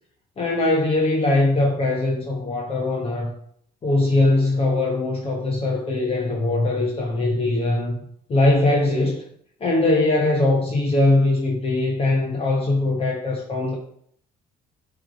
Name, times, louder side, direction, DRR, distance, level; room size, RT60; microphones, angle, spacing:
voice 1, 0.4-3.3 3.8-8.0 8.3-9.2 9.6-13.8, left 2 dB, 35° left, -1 dB, 1.4 m, -21 dB
8.7 x 3.5 x 5.2 m, 0.64 s
cardioid pair, 110°, 17 cm